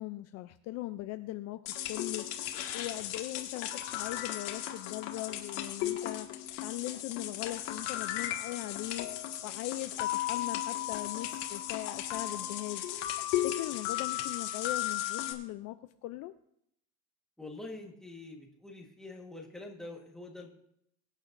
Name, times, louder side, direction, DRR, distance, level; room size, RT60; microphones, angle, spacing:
voice 1, 0.0-1.6 1.9-2.3 2.7-6.3 6.6-9.1 9.4-13.1 13.4-15.8 16.0-16.3, left 16 dB, 50° left, 10 dB, 0.4 m, -39 dB
sound 1, 1.7-15.3, left 13 dB, 90° left, 1.8 m, -35 dB
voice 2, 17.4-20.5, left 2 dB, ahead, 0 dB, 1.3 m, -45 dB
22.5 x 9.1 x 2.6 m, 0.74 s
cardioid pair, 170°, 34 cm